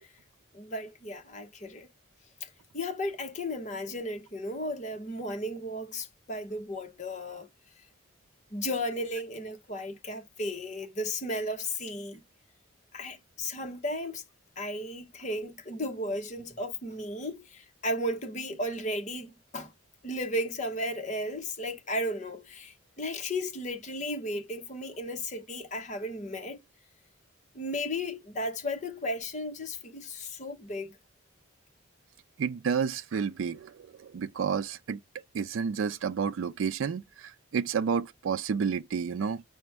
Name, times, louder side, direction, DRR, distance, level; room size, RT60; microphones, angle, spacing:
voice 1, 0.5-1.9 2.4-2.5 2.7-7.5 8.5-12.2 12.9-14.2 14.6-19.7 20.0-26.6 27.5-30.9, left 1 dB, 40° left, 1.0 m, -34 dB
voice 2, 32.4-35.0 35.3-39.4, right 6 dB, 85° right, 0.4 m, -30 dB
5.1 x 2.1 x 4.6 m
head